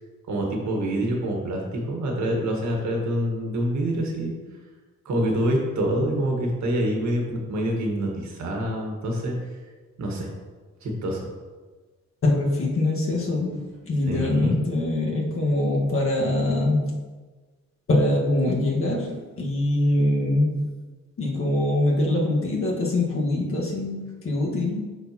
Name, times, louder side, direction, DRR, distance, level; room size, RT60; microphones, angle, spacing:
voice 1, 0.3-4.4 5.1-9.4 10.0-10.3 10.8-11.3 14.1-14.5, right 1 dB, 70° right, 0 dB, 1.7 m, -26 dB
voice 2, 12.2-17.0 17.9-20.7 21.2-24.8, left 1 dB, 45° left, -2 dB, 1.7 m, -23 dB
11.0 x 4.3 x 3.0 m, 1.4 s
cardioid pair, 120°, 29 cm